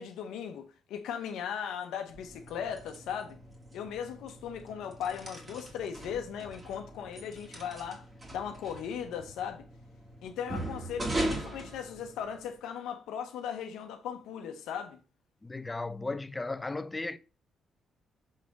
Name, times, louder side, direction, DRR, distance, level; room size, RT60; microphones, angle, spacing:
voice 1, 0.0-3.4 3.7-9.7 10.2-15.0, left 8 dB, 85° left, 0.8 m, -38 dB
sound 1, 2.1-12.5, right 1 dB, 25° right, 1.8 m, -40 dB
voice 2, 15.4-17.2, left 3 dB, 20° left, 0.5 m, -35 dB
6.4 x 3.6 x 5.2 m
cardioid pair, 90°, 0 cm